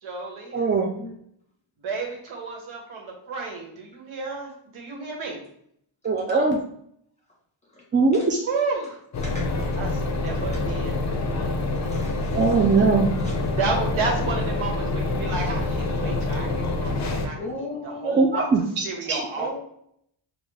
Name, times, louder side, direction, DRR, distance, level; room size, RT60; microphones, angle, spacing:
voice 1, 0.0-0.7 1.8-5.4 8.4-9.0 9.8-11.0 13.6-17.3 18.0-18.5 18.8-19.6, right 4 dB, 85° right, 0 dB, 1.3 m, -31 dB
voice 2, 0.5-0.9 6.0-6.6 7.9-8.4 12.3-13.1 18.1-19.2, right 4 dB, 25° right, 1 dB, 0.3 m, -21 dB
sound 1, 9.1-17.3, left 2 dB, 40° left, 0.5 m, -26 dB
voice 3, 11.8-12.8 13.2-13.3 14.4-14.5 15.3-15.4 17.4-18.3 19.3-19.6, left 2 dB, 15° left, -3 dB, 1.3 m, -38 dB
5.2 x 2.4 x 3.4 m, 0.70 s
wide cardioid pair, 150°, 47 cm